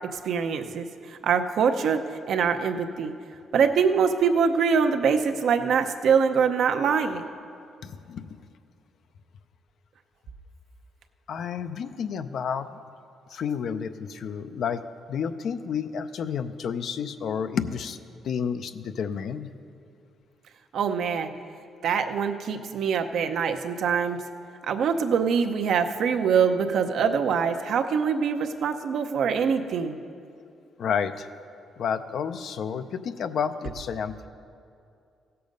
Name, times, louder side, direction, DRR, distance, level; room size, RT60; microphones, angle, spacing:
voice 1, 0.1-0.9 1.2-2.0 2.3-3.1 3.5-7.2 20.7-21.3 21.8-24.2 24.7-30.0, right 6 dB, 70° right, 6 dB, 0.7 m, -24 dB
voice 2, 7.8-8.4 11.3-12.7 13.3-14.8 15.1-18.0 18.2-19.5 30.8-31.3 31.8-34.3, left 7 dB, 65° left, 11 dB, 0.5 m, -30 dB
16.0 x 6.8 x 5.3 m, 2.4 s
cardioid pair, 90°, 0 cm